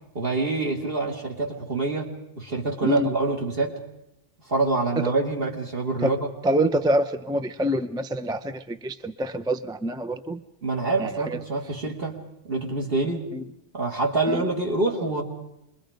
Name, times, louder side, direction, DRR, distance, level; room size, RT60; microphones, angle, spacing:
voice 1, 0.1-3.8 4.5-6.3 10.6-12.2 12.5-13.3 13.7-15.2, right 3 dB, 50° right, 0 dB, 2.9 m, -26 dB
voice 2, 6.4-10.4 11.0-11.4 13.3-13.4 14.3-14.4, right 1 dB, 5° right, 9 dB, 0.4 m, -26 dB
27.0 x 22.0 x 5.2 m, 0.84 s
omnidirectional pair, 1.2 m